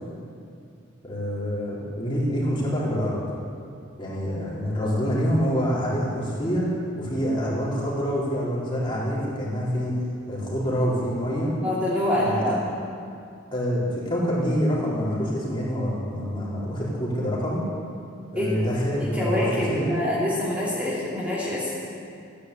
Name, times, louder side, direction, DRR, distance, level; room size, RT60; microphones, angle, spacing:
voice 1, 1.0-3.2 4.0-6.7 7.0-10.0 10.3-11.5 12.2-12.6 13.5-17.6 18.3-19.9, equal, 25° left, -7 dB, 4.0 m, -26 dB
voice 2, 11.6-12.6 18.4-18.6 19.0-21.7, left 1 dB, 5° right, -8 dB, 2.6 m, -25 dB
15.0 x 10.5 x 8.2 m, 2.4 s
head